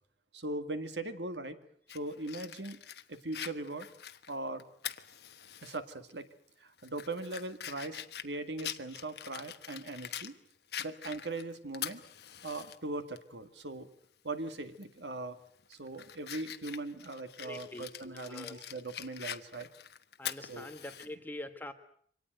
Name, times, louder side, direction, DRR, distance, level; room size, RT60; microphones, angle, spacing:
voice 1, 0.3-1.6 1.9-2.8 3.1-3.9 4.3-4.6 5.6-6.3 6.6-10.4 10.8-12.0 12.4-13.9 14.2-15.4 15.7-19.7 20.5-20.7, right 2 dB, 75° right, 9 dB, 2.0 m, -40 dB
Fire, 1.9-5.8 6.2-6.3 6.8-10.3 10.7-12.8 13.2-13.3 14.7-15.0 15.5-21.1, left 10 dB, 65° left, 1.2 m, -44 dB
voice 2, 17.4-17.9 18.1-18.6 20.2-21.7, left 1 dB, 10° left, 7 dB, 1.4 m, -44 dB
25.0 x 18.5 x 9.0 m, 0.62 s
head